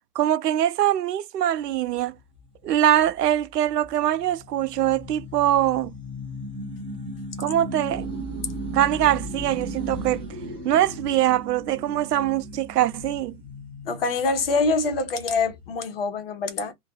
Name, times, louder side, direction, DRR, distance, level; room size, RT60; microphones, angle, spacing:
voice 1, 0.2-2.1 2.6-5.9 7.4-8.1 8.7-10.2 10.6-13.4, right 12 dB, 80° right, 0.6 m, -23 dB
sound 1, 1.6-15.8, right 1 dB, 10° right, 0.4 m, -37 dB
voice 2, 13.9-16.7, left 3 dB, 40° left, 0.7 m, -25 dB
2.3 x 2.2 x 2.7 m
hypercardioid pair, 160°, 47 cm